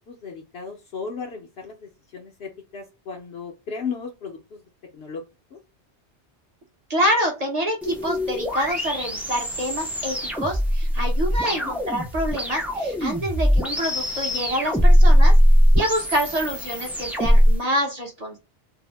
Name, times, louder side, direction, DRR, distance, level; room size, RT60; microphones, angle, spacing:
voice 1, 0.1-4.6 4.9-5.2 5.5-5.6 11.3-11.7, left 5 dB, 65° left, 1 dB, 0.8 m, -35 dB
voice 2, 6.9-15.4 15.7-18.4, equal, 40° right, 2 dB, 0.8 m, -26 dB
sound 1, 7.8-17.6, equal, 5° right, 0.3 m, -20 dB
2.7 x 2.0 x 3.2 m, 0.27 s
omnidirectional pair, 1.2 m